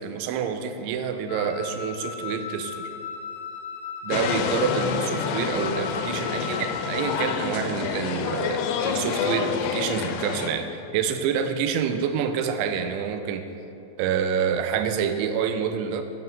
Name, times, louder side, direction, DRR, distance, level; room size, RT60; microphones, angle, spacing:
voice 1, 0.0-2.9 4.0-13.4 14.0-16.0, right 7 dB, 85° right, 8 dB, 2.9 m, -27 dB
Wind instrument woodwind instrument, 1.3-7.5, left 6 dB, 60° left, 2.9 m, -36 dB
sound 1, 4.1-10.5, left 6 dB, 85° left, 3.1 m, -28 dB
9.2 x 7.9 x 5.3 m, 2.7 s
omnidirectional pair, 5.5 m